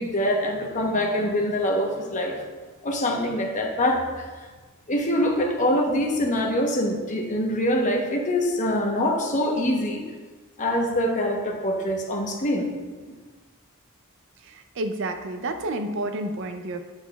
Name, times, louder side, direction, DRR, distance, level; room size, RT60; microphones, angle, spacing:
voice 1, 0.0-2.4 2.8-4.2 4.9-10.0 10.6-12.7 13.1-13.2, left 1 dB, 35° left, 1 dB, 0.9 m, -24 dB
voice 2, 14.4-16.8, right 2 dB, 60° right, 7 dB, 0.5 m, -30 dB
8.1 x 7.9 x 2.3 m, 1.4 s
head